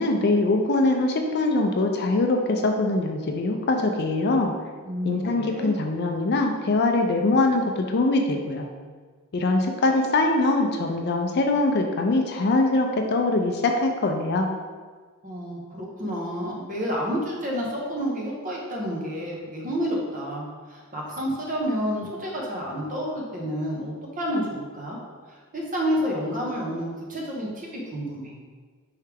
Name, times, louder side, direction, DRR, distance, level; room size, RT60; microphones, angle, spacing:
voice 1, 0.0-4.5 5.0-8.7 9.3-14.5, left 2 dB, 45° left, 3 dB, 0.4 m, -23 dB
voice 2, 4.8-5.7 15.2-25.0 25.3-28.3, equal, 35° right, -2 dB, 0.9 m, -30 dB
4.7 x 3.2 x 3.4 m, 1.5 s
head